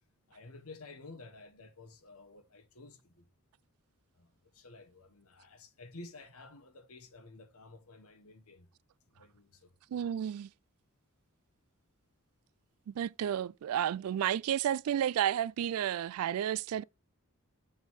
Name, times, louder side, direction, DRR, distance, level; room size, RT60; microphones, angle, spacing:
voice 1, 0.3-3.2 4.1-8.7 9.1-9.7, left 3 dB, 75° left, 1.4 m, -52 dB
voice 2, 9.9-10.5 12.9-16.8, right 10 dB, 70° right, 0.3 m, -31 dB
7.1 x 3.7 x 6.4 m
head